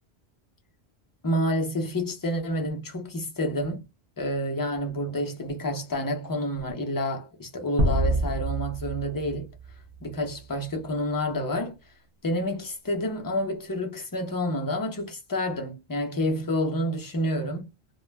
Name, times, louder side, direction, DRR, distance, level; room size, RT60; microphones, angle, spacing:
voice 1, 1.2-3.8 4.2-9.5 10.0-11.7 12.2-17.7, left 1 dB, 25° left, 0.5 m, -29 dB
sound 1, 7.8-10.4, right 1 dB, 55° right, 0.6 m, -27 dB
2.2 x 2.0 x 3.2 m
omnidirectional pair, 1.1 m